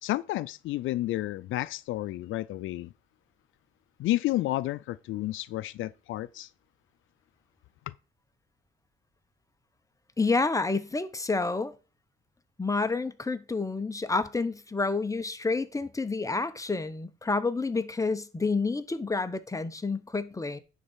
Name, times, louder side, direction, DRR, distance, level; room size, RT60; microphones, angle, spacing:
voice 1, 0.0-2.9 4.0-6.5 7.9-8.0, left 16 dB, 80° left, 0.5 m, -31 dB
voice 2, 10.2-11.7 12.6-20.6, left 3 dB, 15° left, 1.0 m, -29 dB
10.0 x 4.0 x 7.3 m
cardioid pair, 90°, 20 cm